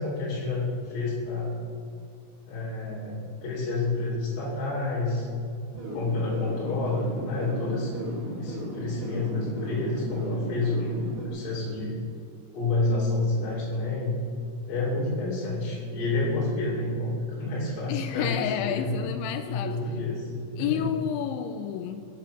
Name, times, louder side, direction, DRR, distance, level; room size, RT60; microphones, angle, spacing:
voice 1, 0.0-1.6 2.5-5.3 5.9-8.0 8.4-10.9 11.2-12.0 12.5-14.2 14.7-17.1 17.4-19.0 19.5-20.3 20.6-20.9, left 2 dB, 60° left, -7 dB, 4.9 m, -29 dB
sound 1, 5.7-11.3, right 1 dB, 25° right, 2.7 m, -35 dB
voice 2, 17.9-19.8 20.6-22.0, left 9 dB, 85° left, 8 dB, 2.9 m, -30 dB
21.5 x 8.6 x 5.9 m, 2.3 s
omnidirectional pair, 5.5 m